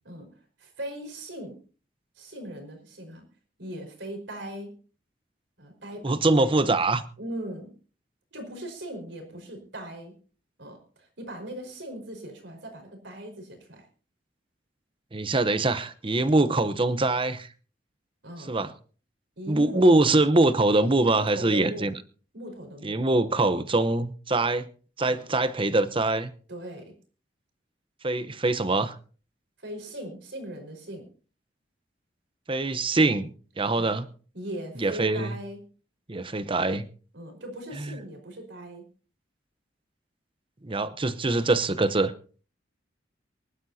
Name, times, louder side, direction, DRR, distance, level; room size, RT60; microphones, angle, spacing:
voice 1, 0.6-1.6 2.1-3.2 3.6-4.7 5.6-6.5 7.2-7.7 8.3-10.1 10.6-13.9 18.2-18.5 19.4-19.9 21.0-21.9 22.3-23.0 25.1-25.2 26.5-26.9 29.6-31.0 33.8-33.9 34.3-35.6 37.1-38.8, right 1 dB, 75° right, 4.9 m, -39 dB
voice 2, 6.0-7.0 15.1-17.5 18.5-18.7 19.5-21.9 22.8-24.7 25.0-26.3 28.0-28.9 32.5-33.3 33.6-34.0 34.8-35.4 36.1-36.9 37.8-37.9 40.6-42.1, right 2 dB, 30° right, 0.9 m, -23 dB
24.0 x 12.0 x 2.8 m
head